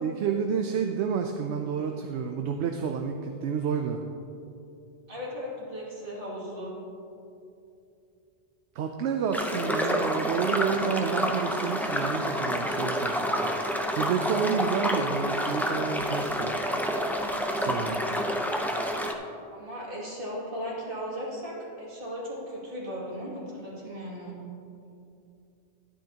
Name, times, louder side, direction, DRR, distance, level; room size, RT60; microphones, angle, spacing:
voice 1, 0.0-4.0 8.7-13.2 13.6-16.5 17.6-18.0, right 6 dB, 80° right, 4 dB, 0.9 m, -30 dB
voice 2, 5.1-6.7 9.2-10.0 14.6-14.9 19.5-24.4, equal, 55° right, -6 dB, 2.6 m, -37 dB
sound 1, 9.3-19.1, equal, 5° left, 0.3 m, -28 dB
12.0 x 10.0 x 2.9 m, 2.7 s
omnidirectional pair, 1.1 m